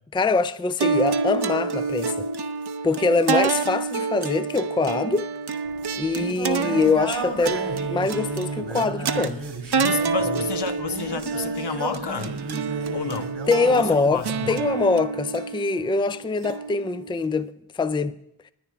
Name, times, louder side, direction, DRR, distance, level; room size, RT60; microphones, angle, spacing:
voice 1, 0.1-2.2 2.8-5.3 6.0-9.4 13.5-18.2, left 4 dB, 10° left, 0.4 m, -24 dB
sound 1, 0.8-17.3, right 5 dB, 60° right, 0.8 m, -28 dB
Singing, 5.7-14.7, right 3 dB, 90° right, 2.2 m, -34 dB
voice 2, 9.8-12.3 12.9-13.3 13.7-14.6, left 5 dB, 65° left, 1.0 m, -30 dB
20.5 x 9.3 x 3.5 m
cardioid pair, 40°, 43 cm